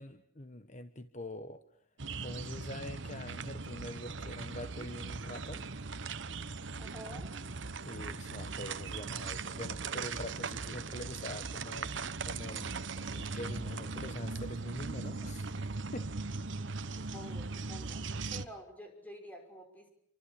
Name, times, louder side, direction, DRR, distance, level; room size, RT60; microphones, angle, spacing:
voice 1, 0.0-1.6 2.2-5.6 7.8-15.5 15.9-16.1, left 1 dB, 40° left, 11 dB, 1.2 m, -45 dB
sound 1, 2.0-18.5, right 4 dB, 75° right, 1.2 m, -39 dB
voice 2, 6.8-7.3 17.1-19.9, equal, 10° left, 4 dB, 5.9 m, -49 dB
27.5 x 24.5 x 8.7 m, 0.65 s
head